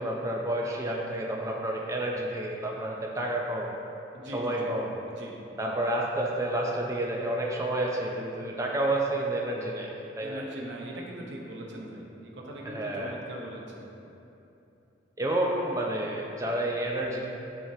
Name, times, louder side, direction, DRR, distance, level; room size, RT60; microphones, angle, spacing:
voice 1, 0.0-3.7 4.3-5.0 5.6-10.5 12.6-13.2 15.2-17.3, right 1 dB, 15° right, -1 dB, 0.4 m, -30 dB
voice 2, 4.1-4.7 5.1-5.4 10.2-13.9, right 1 dB, 80° right, -2 dB, 0.9 m, -41 dB
10.0 x 3.6 x 2.7 m, 2.9 s
head